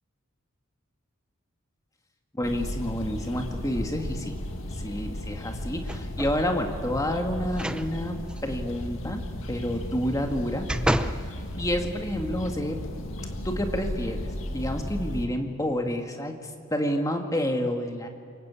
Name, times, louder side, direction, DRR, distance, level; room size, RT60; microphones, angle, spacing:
voice 1, 2.3-4.3 4.8-8.2 8.4-10.7 11.1-11.2 11.6-12.8 13.4-14.2 14.5-18.1, equal, 15° left, 4 dB, 2.1 m, -29 dB
sound 1, 2.4-15.3, left 1 dB, 70° left, 2.2 m, -35 dB
sound 2, 5.9-6.4 7.5-7.9 8.3-8.4 10.0-11.2 11.8-11.9, equal, 5° right, 0.8 m, -29 dB
28.0 x 23.0 x 8.5 m, 2.3 s
head